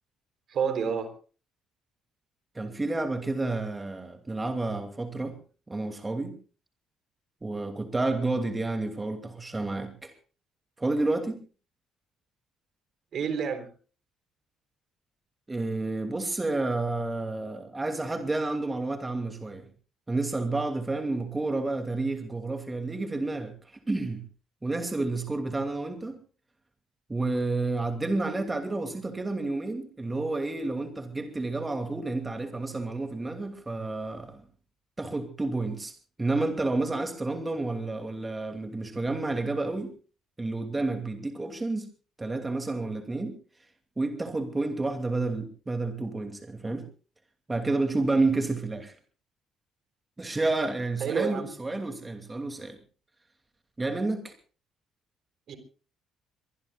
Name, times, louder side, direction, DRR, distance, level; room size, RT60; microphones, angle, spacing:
voice 1, 0.5-1.1 13.1-13.7 51.0-51.5 55.5-55.6, right 6 dB, 55° right, 9 dB, 3.7 m, -29 dB
voice 2, 2.5-5.4 5.7-6.3 7.4-10.1 10.8-11.4 15.5-19.7 20.1-24.2 24.6-26.2 27.1-34.4 35.0-35.9 36.2-39.9 40.4-41.9 42.2-43.3 44.0-46.9 47.5-49.0 50.2-52.8 53.8-54.3, right 2 dB, 20° right, 6 dB, 2.7 m, -30 dB
23.0 x 23.0 x 2.5 m, 0.38 s
figure-of-eight pair, 50°, 0 cm